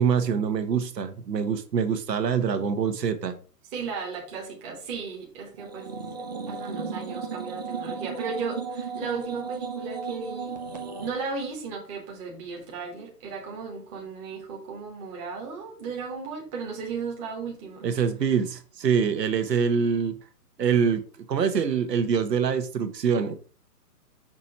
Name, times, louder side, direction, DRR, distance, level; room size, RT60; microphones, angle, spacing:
voice 1, 0.0-3.3 17.8-20.1 20.6-21.0 21.3-23.3, right 6 dB, 85° right, 1.2 m, -24 dB
voice 2, 3.7-10.6 11.0-17.9, right 5 dB, 15° right, 1.0 m, -35 dB
sound 1, 5.6-11.1, right 5 dB, 30° right, 0.5 m, -35 dB
6.0 x 2.9 x 5.5 m
hypercardioid pair, 155°, 48 cm